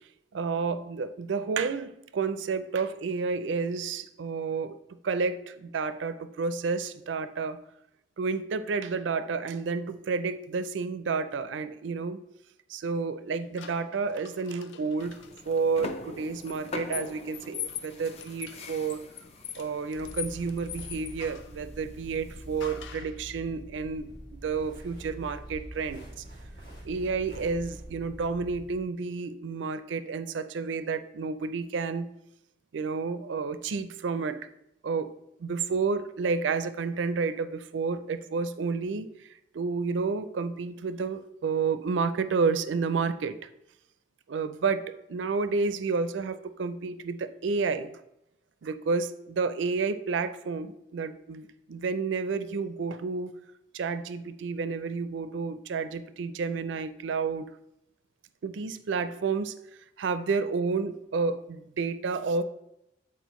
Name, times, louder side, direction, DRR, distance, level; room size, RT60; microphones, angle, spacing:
voice 1, 0.3-4.8 5.0-7.6 8.2-12.2 12.7-15.2 15.5-19.0 19.6-26.0 26.8-32.1 32.7-34.4 34.8-35.1 35.4-39.1 39.5-43.4 44.3-47.9 48.6-53.4 53.7-57.5 58.4-59.5 60.0-62.4, right 4 dB, 80° right, 12 dB, 0.4 m, -30 dB
sound 1, 13.6-15.4 16.4-21.6 22.6-23.2, left 9 dB, 90° left, 0.5 m, -42 dB
sound 2, 15.0-22.9, left 3 dB, 35° left, 0.5 m, -44 dB
sound 3, 19.9-28.8, right 1 dB, 70° left, 1.7 m, -45 dB
8.2 x 4.2 x 3.0 m, 0.83 s
head